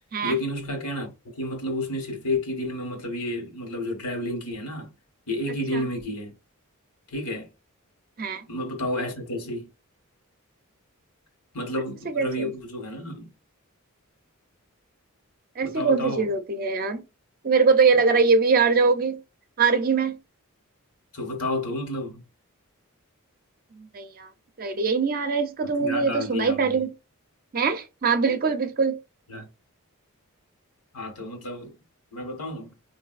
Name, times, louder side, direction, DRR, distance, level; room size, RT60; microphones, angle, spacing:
voice 1, 0.2-4.9 5.3-6.3 7.1-7.5 8.5-9.7 11.5-13.3 15.6-16.3 21.1-22.2 25.8-26.8 29.3-29.5 30.9-31.7 32.1-32.7, left 1 dB, 80° left, 1.4 m, -31 dB
voice 2, 12.1-12.5 15.6-17.0 17.4-19.2 19.6-20.2 23.8-24.3 24.6-26.9 27.5-29.0, right 4 dB, 40° right, 0.5 m, -22 dB
4.7 x 2.6 x 2.4 m
head